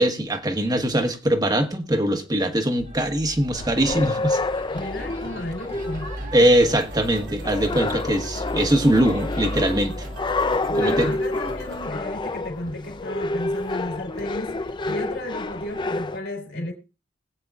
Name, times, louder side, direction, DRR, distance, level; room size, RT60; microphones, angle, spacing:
voice 1, 0.0-4.4 6.3-10.1 10.7-11.1, right 1 dB, 20° right, 1.2 m, -21 dB
sound 1, 2.8-14.9, equal, 45° right, 1.3 m, -38 dB
sound 2, 3.5-16.2, left 2 dB, 25° left, 0.5 m, -29 dB
voice 2, 4.7-6.1 6.4-6.5 10.7-14.6 14.8-16.7, left 1 dB, 70° left, 3.7 m, -33 dB
sound 3, 5.0-11.8, right 2 dB, 75° right, 3.7 m, -43 dB
21.5 x 8.6 x 2.4 m
head